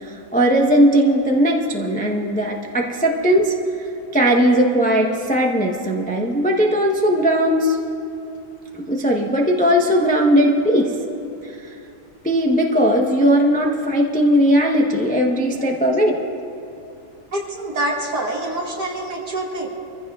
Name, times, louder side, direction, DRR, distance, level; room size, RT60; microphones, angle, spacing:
voice 1, 0.0-3.5 4.1-7.8 8.7-10.9 12.2-16.2, equal, 10° left, 0 dB, 0.4 m, -18 dB
voice 2, 17.3-19.7, right 1 dB, 55° right, -3 dB, 2.7 m, -26 dB
26.0 x 15.0 x 2.4 m, 2.7 s
omnidirectional pair, 2.2 m